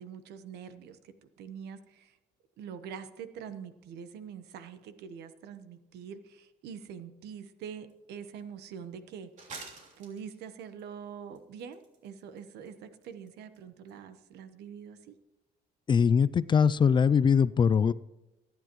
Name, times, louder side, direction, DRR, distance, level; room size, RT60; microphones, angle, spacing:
voice 1, 0.0-2.2 2.6-9.6 10.0-15.1, right 7 dB, 75° right, 11 dB, 1.1 m, -44 dB
sound 1, 7.9-8.0 8.4-8.5 9.4-10.8 11.4-12.4 12.7-12.8 13.0-13.3 13.5-13.6 13.9-14.0, right 3 dB, 45° right, 3.3 m, -47 dB
voice 2, 15.9-17.9, left 6 dB, 30° left, 18 dB, 0.3 m, -22 dB
24.0 x 10.0 x 3.1 m, 1.1 s
cardioid pair, 110°, 17 cm